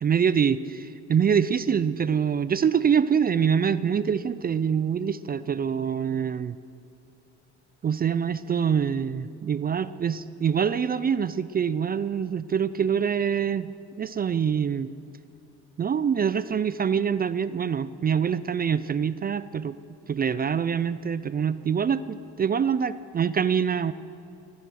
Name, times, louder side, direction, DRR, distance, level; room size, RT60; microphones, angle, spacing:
voice 1, 0.0-6.6 7.8-13.7 14.0-14.9 15.8-19.8 20.1-23.9, right 7 dB, 30° right, 15 dB, 0.4 m, -25 dB
15.0 x 10.0 x 6.4 m, 2.7 s
cardioid pair, 90°, 30 cm